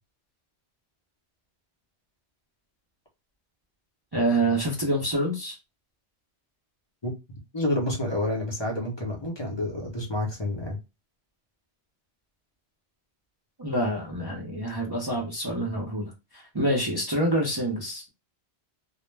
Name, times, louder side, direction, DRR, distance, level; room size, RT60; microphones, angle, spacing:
voice 1, 4.1-5.6 13.6-18.1, right 1 dB, 30° right, 0.5 m, -27 dB
voice 2, 7.5-10.8, left 1 dB, 30° left, 0.6 m, -29 dB
2.2 x 2.1 x 3.1 m
omnidirectional pair, 1.2 m